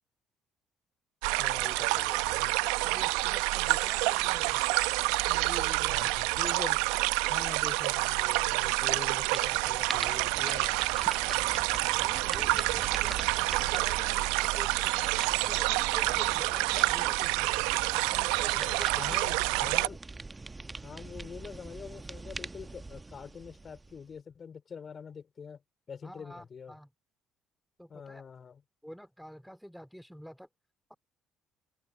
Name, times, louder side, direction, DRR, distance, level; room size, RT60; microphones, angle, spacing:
sound 1, 1.2-19.9, right 23 dB, 80° right, 0.7 m, -28 dB
voice 1, 1.4-2.6 5.9-6.9 7.3-10.7 18.6-20.0 20.8-25.6 25.9-26.8 27.9-28.6, left 6 dB, 45° left, 3.5 m, -44 dB
voice 2, 2.8-4.6 5.3-6.1 12.0-15.2 15.5-19.2 19.8-20.0 26.0-26.9 27.8-28.3 28.8-30.5 30.9-31.0, equal, ahead, 2.6 m, -48 dB
sound 2, 9.2-24.2, right 3 dB, 20° right, 1.1 m, -43 dB
hypercardioid pair, 55°, 0 cm